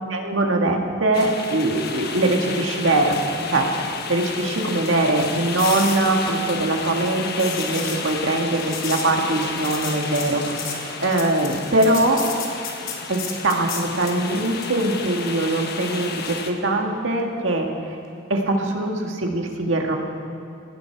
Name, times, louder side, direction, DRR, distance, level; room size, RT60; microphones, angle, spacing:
voice 1, 0.1-3.2 3.5-12.2 13.1-18.0 18.3-19.9, right 2 dB, 70° right, 2 dB, 1.9 m, -22 dB
sound 1, 1.1-16.5, left 4 dB, 50° left, 1.3 m, -32 dB
sound 2, 5.6-14.2 18.4-18.6, left 5 dB, 80° left, 2.4 m, -35 dB
18.5 x 16.0 x 4.7 m, 2.6 s
head